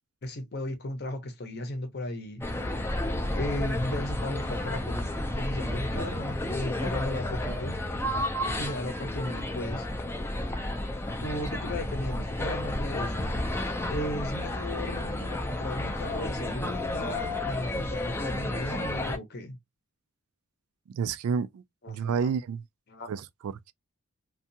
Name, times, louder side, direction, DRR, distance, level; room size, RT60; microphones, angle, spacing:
voice 1, 0.2-2.6 3.3-5.0 5.3-7.8 8.5-9.9 11.1-13.3 13.9-19.6 21.8-22.3 22.9-23.1, left 1 dB, 45° left, 0.7 m, -35 dB
sound 1, 2.4-19.2, left 1 dB, 10° left, 0.3 m, -31 dB
voice 2, 20.9-22.6 23.1-23.7, right 6 dB, 80° right, 0.3 m, -30 dB
2.6 x 2.3 x 2.6 m
head